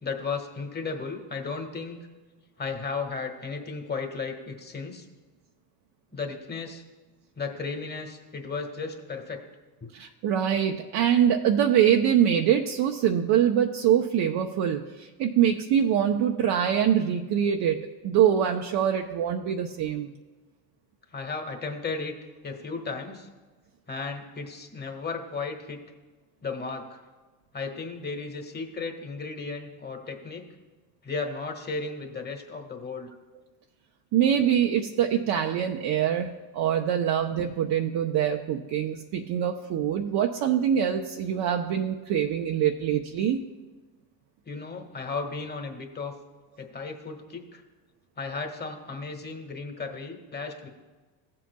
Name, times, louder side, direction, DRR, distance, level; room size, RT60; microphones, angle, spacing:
voice 1, 0.0-2.0 2.6-5.0 6.1-6.8 7.4-9.4 21.1-22.1 22.4-23.3 23.9-25.8 26.4-27.0 27.5-30.4 31.0-33.1 44.5-46.1 46.6-47.6 48.2-50.7, left 4 dB, 20° left, 4 dB, 1.6 m, -34 dB
voice 2, 9.9-20.1 34.1-43.4, right 9 dB, 50° right, 2 dB, 0.8 m, -24 dB
15.5 x 7.6 x 2.3 m, 1.3 s
supercardioid pair, 85°, 50 cm